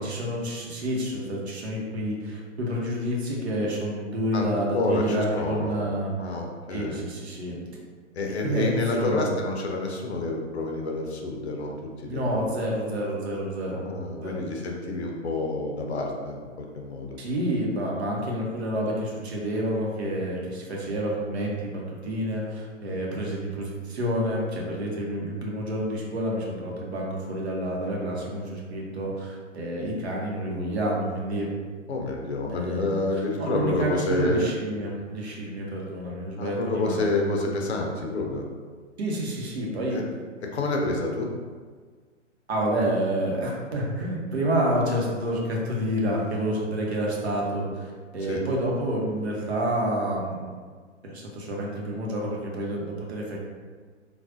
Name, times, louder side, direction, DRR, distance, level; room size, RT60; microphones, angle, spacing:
voice 1, 0.0-6.3 6.7-7.5 8.3-9.3 12.0-13.8 14.2-14.5 17.2-31.5 32.5-37.1 39.0-40.0 42.5-50.5 51.0-53.4, right 1 dB, 55° right, -2 dB, 0.9 m, -29 dB
voice 2, 4.7-5.8 6.2-7.0 8.1-11.8 12.0-12.5 13.7-17.2 22.9-23.2 31.9-34.5 36.4-38.5 39.9-40.1 40.4-41.3 48.3-48.4, left 2 dB, 60° left, 1 dB, 0.6 m, -28 dB
3.5 x 2.4 x 2.5 m, 1.5 s
figure-of-eight pair, 130°, 38 cm